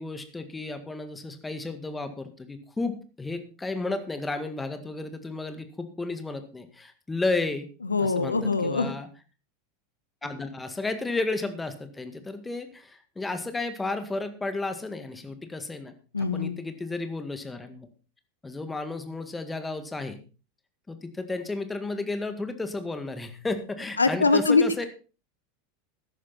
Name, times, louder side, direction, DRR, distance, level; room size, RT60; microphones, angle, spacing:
voice 1, 0.0-7.7 8.0-9.1 10.2-17.9 18.4-20.2 20.9-24.9, left 3 dB, 10° left, 9 dB, 1.9 m, -33 dB
voice 2, 7.8-8.9 16.1-16.6 24.0-24.8, left 3 dB, 85° left, 12 dB, 1.3 m, -23 dB
14.0 x 11.0 x 4.2 m, 0.34 s
figure-of-eight pair, 85°, 0 cm